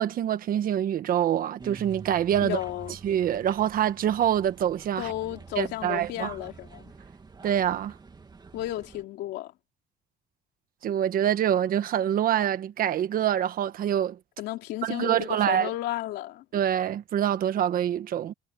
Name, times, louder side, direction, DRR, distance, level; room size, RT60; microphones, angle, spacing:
voice 1, 0.0-2.6 3.0-5.1 5.6-6.3 7.4-7.9 10.8-14.2 14.8-15.7 16.5-18.3, right 10 dB, 60° right, 1.3 m, -25 dB
sound 1, 1.6-9.0, right 5 dB, 25° right, 2.6 m, -47 dB
voice 2, 2.4-3.0 5.0-6.9 8.5-9.5 14.4-16.4, left 15 dB, 85° left, 3.1 m, -33 dB
cardioid pair, 110°, 17 cm